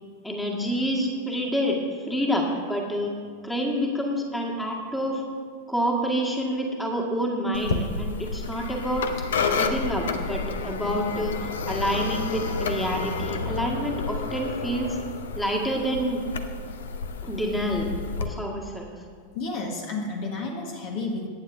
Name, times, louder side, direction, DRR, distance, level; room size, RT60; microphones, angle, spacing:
voice 1, 0.2-1.8 2.1-3.1 3.4-5.2 5.7-9.1 9.5-15.0 15.4-16.2 17.2-18.9, equal, 5° left, 0 dB, 1.8 m, -28 dB
sound 1, 7.5-18.3, left 5 dB, 60° left, 0.7 m, -30 dB
voice 2, 19.3-21.3, left 3 dB, 45° left, 1 dB, 1.5 m, -31 dB
23.5 x 9.5 x 2.6 m, 2.1 s
figure-of-eight pair, 90°, 0 cm